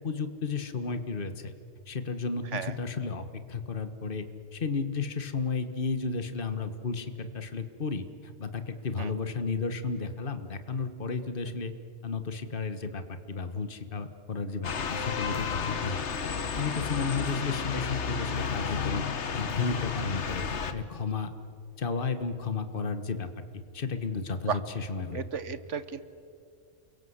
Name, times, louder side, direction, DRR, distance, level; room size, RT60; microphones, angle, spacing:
voice 1, 0.0-1.5 1.9-4.3 4.5-11.7 12.0-16.0 16.5-19.0 19.3-21.3 21.8-23.3 23.5-25.2, left 4 dB, 50° left, 10 dB, 1.6 m, -33 dB
sound 1, 14.6-20.7, left 6 dB, 70° left, 1.5 m, -32 dB
voice 2, 25.1-26.0, right 6 dB, 80° right, 13 dB, 1.4 m, -33 dB
29.0 x 23.0 x 8.1 m, 2.3 s
omnidirectional pair, 1.2 m